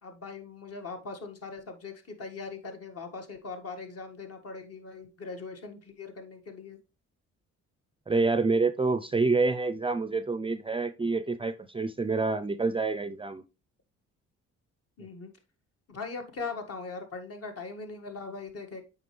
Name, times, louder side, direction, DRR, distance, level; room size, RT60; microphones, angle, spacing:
voice 1, 0.0-6.8 11.0-11.1 15.0-15.3 15.9-18.9, left 4 dB, 50° left, 1.7 m, -40 dB
voice 2, 8.1-13.4, right 3 dB, 20° right, 0.4 m, -27 dB
7.8 x 5.1 x 3.2 m
cardioid pair, 90°, 30 cm